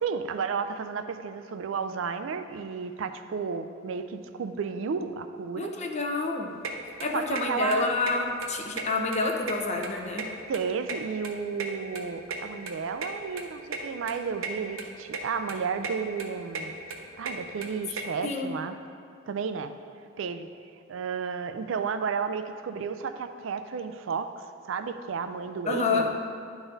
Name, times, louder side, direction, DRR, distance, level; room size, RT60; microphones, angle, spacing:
voice 1, 0.0-5.7 7.1-8.0 10.5-16.8 17.2-18.8 19.3-19.7 20.2-20.5 20.9-26.1, right 5 dB, 70° right, 9 dB, 0.4 m, -32 dB
voice 2, 5.5-6.6 7.0-10.3 18.2-18.5 25.7-26.1, left 3 dB, 35° left, 2 dB, 0.7 m, -28 dB
sound 1, 6.6-6.7 7.0-7.4 7.7-7.8 8.1-8.2 8.4-9.2 9.4-10.6 10.9-12.4 12.7-12.8 13.0-13.1 13.4-13.5 13.7-13.8 14.1-14.5 14.8-15.2 15.5-15.9 16.2-18.0, right 4 dB, 85° right, 0.8 m, -34 dB
10.5 x 4.0 x 3.9 m, 2.4 s
head